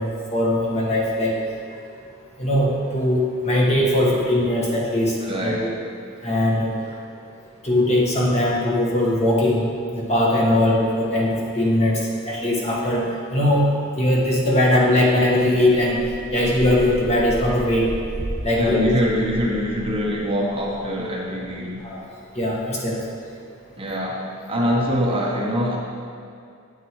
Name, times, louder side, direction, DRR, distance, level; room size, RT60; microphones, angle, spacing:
voice 1, 0.0-1.4 2.4-5.7 6.2-6.7 7.6-9.7 9.9-13.7 14.0-16.0 16.3-17.9 18.4-18.9 21.8-22.0 22.3-23.0, left 1 dB, 30° left, -4 dB, 1.4 m, -20 dB
voice 2, 5.2-5.7 8.7-8.8 18.6-21.8 23.8-25.8, equal, 25° right, -3 dB, 0.9 m, -24 dB
sound 1, 15.8-21.8 22.3-22.4, right 1 dB, 70° right, 1.3 m, -35 dB
9.3 x 8.2 x 3.1 m, 2.3 s
head